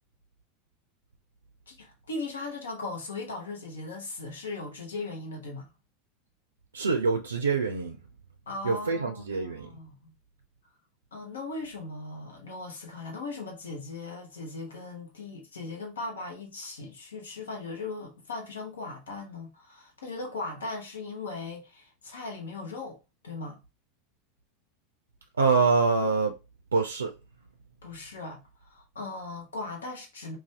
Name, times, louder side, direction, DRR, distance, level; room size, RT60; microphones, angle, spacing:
voice 1, 1.7-5.7 8.5-10.1 11.1-23.0 23.2-23.6 27.8-30.4, left 3 dB, 80° left, 0.8 m, -38 dB
voice 2, 6.7-8.0 8.6-9.7 25.4-26.4 26.7-27.1, right 4 dB, 85° right, 0.3 m, -25 dB
2.6 x 2.3 x 3.2 m
hypercardioid pair, 85°, 0 cm